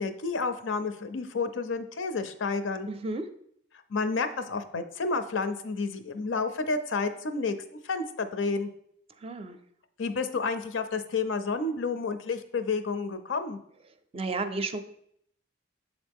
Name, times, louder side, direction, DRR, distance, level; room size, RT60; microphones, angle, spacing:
voice 1, 0.0-2.9 3.9-7.6 7.8-8.7 10.0-13.6, left 4 dB, 85° left, 10 dB, 0.5 m, -30 dB
voice 2, 2.9-3.2 9.2-9.6 14.1-14.8, right 3 dB, 30° right, 9 dB, 0.4 m, -32 dB
7.1 x 3.9 x 3.5 m, 0.69 s
head